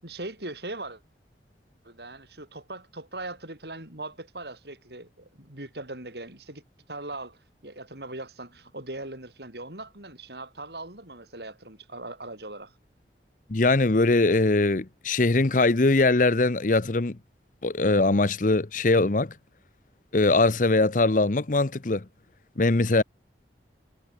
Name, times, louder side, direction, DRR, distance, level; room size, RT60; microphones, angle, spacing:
voice 1, 0.0-1.0 1.8-6.6 6.9-12.7, right 2 dB, 70° right, 7.5 m, -40 dB
voice 2, 13.5-17.2 17.6-19.3 20.1-22.0 22.6-23.0, left 2 dB, 45° left, 0.8 m, -21 dB
head